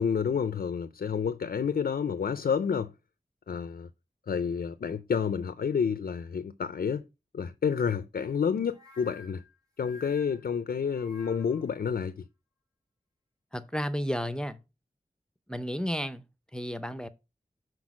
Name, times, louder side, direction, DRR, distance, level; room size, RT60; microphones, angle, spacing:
voice 1, 0.0-2.9 3.5-3.9 4.3-7.0 7.3-9.4 9.8-12.2, left 6 dB, 80° left, 0.4 m, -29 dB
sound 1, 8.7-11.8, left 4 dB, 25° right, 2.6 m, -52 dB
voice 2, 13.5-14.6 15.5-16.2 16.5-17.1, equal, 5° left, 0.6 m, -32 dB
6.2 x 4.5 x 4.7 m
wide cardioid pair, 80°, 15 cm